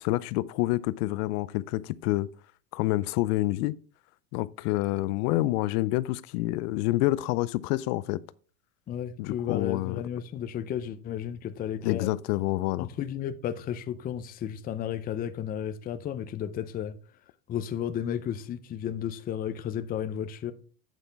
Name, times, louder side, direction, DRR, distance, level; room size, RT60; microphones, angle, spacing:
voice 1, 0.0-2.3 2.7-3.7 4.3-8.2 9.2-10.0 11.8-12.9, left 17 dB, 75° left, 0.6 m, -27 dB
voice 2, 8.9-12.1 12.8-17.0 17.5-20.5, left 9 dB, 20° left, 0.5 m, -33 dB
8.2 x 8.0 x 3.4 m
supercardioid pair, 135°, 47 cm